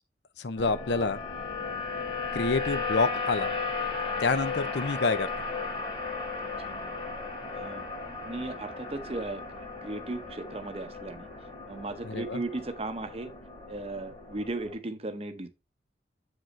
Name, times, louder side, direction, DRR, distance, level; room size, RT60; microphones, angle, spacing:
voice 1, 0.4-1.2 2.3-3.5 4.2-5.3 12.0-12.4, left 4 dB, 75° left, 0.6 m, -28 dB
sound 1, 0.6-14.7, left 4 dB, 30° left, 1.7 m, -35 dB
voice 2, 7.5-7.9 8.2-11.3 11.7-13.3 13.7-15.5, right 2 dB, 35° right, 0.7 m, -36 dB
7.5 x 5.1 x 3.2 m
head